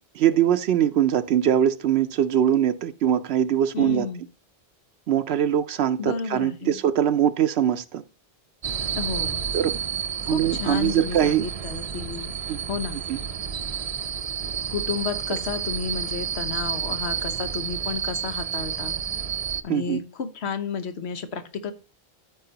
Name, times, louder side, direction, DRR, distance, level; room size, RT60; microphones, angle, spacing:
voice 1, 0.2-4.1 5.1-8.0 9.5-9.8 10.3-11.4 12.5-12.6 13.1-13.2 19.7-20.0, right 10 dB, 80° right, 0.8 m, -22 dB
voice 2, 3.7-4.2 6.0-6.8 9.0-9.5 10.3-12.3 12.7-13.0 14.7-19.0 19.6-21.7, left 5 dB, 90° left, 1.2 m, -31 dB
sound 1, 8.6-19.6, right 7 dB, 45° right, 0.5 m, -30 dB
14.0 x 4.8 x 2.8 m
omnidirectional pair, 1.1 m